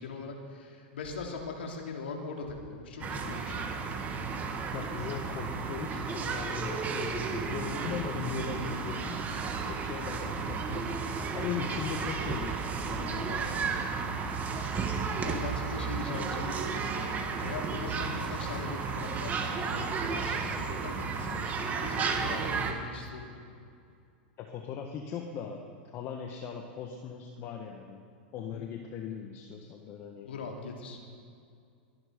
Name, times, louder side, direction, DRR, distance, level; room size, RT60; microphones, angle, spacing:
voice 1, 0.0-3.7 15.2-23.4 28.5-28.6 30.2-31.1, left 4 dB, 85° left, 1 dB, 3.0 m, -41 dB
sound 1, 3.0-22.7, right 5 dB, 25° right, 1.9 m, -33 dB
voice 2, 4.7-9.2 9.7-13.7 24.4-25.7 25.9-28.0 28.3-30.3, left 7 dB, 45° left, 3 dB, 1.5 m, -39 dB
23.0 x 11.0 x 5.2 m, 2.3 s
hypercardioid pair, 110°, 6 cm